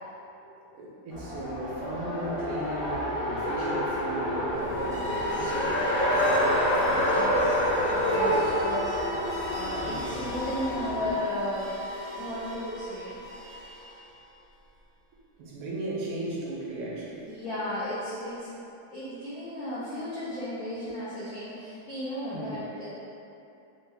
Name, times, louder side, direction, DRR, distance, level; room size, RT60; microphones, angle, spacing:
voice 1, 0.7-5.9 8.2-8.5 9.8-10.2 15.4-17.3 22.3-22.6, right 1 dB, 85° right, -4 dB, 1.6 m, -36 dB
Race car auto racing, 1.1-11.1, equal, 60° left, 1.3 m, -28 dB
sound 1, 4.4-14.3, left 1 dB, 65° right, 0.9 m, -36 dB
voice 2, 6.8-7.5 7.9-13.2 17.2-18.5 18.9-22.9, left 1 dB, 90° left, -10 dB, 0.7 m, -35 dB
4.3 x 2.1 x 3.4 m, 2.8 s
omnidirectional pair, 2.3 m